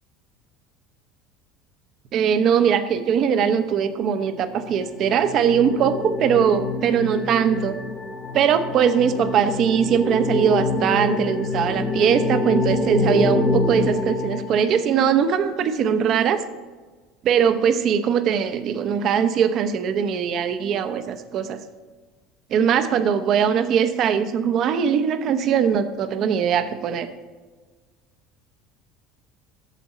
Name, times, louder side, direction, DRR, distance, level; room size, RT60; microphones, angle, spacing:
voice 1, 2.1-7.8 8.3-16.4 17.2-21.6 22.5-27.1, right 7 dB, 55° right, 10 dB, 0.7 m, -21 dB
sound 1, 4.4-15.1, left 2 dB, 20° left, 1.0 m, -26 dB
8.4 x 6.9 x 4.1 m, 1.4 s
supercardioid pair, 90°, 0 cm